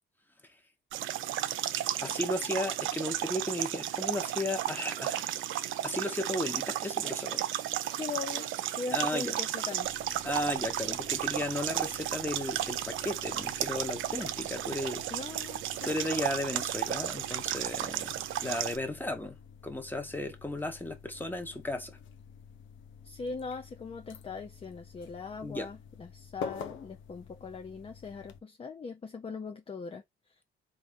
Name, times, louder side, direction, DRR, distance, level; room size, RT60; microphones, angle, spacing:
sound 1, 0.9-18.8, right 12 dB, 80° right, 0.5 m, -34 dB
voice 1, 2.0-5.3 5.8-7.4 8.9-9.3 10.2-15.1 15.8-22.0 25.4-25.7, left 1 dB, 10° left, 1.2 m, -35 dB
voice 2, 7.9-9.9 15.1-15.9 23.0-30.3, left 4 dB, 30° left, 0.6 m, -41 dB
sound 2, 9.8-28.4, left 6 dB, 75° left, 0.7 m, -49 dB
3.9 x 2.7 x 3.6 m
cardioid pair, 90°, 20 cm